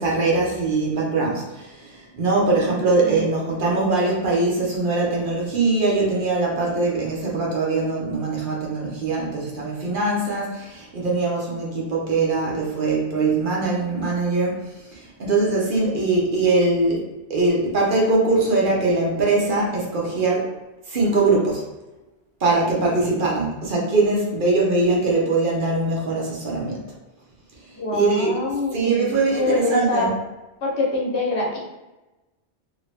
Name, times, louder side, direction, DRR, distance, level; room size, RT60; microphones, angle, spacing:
voice 1, 0.0-20.5 20.9-21.6 22.4-26.8 27.9-28.3 28.7-30.1, right 3 dB, 55° right, -3 dB, 0.9 m, -22 dB
voice 2, 27.7-29.1 29.4-30.1 30.6-31.6, left 2 dB, 75° left, -3 dB, 1.2 m, -24 dB
2.8 x 2.8 x 3.2 m, 1.1 s
omnidirectional pair, 1.1 m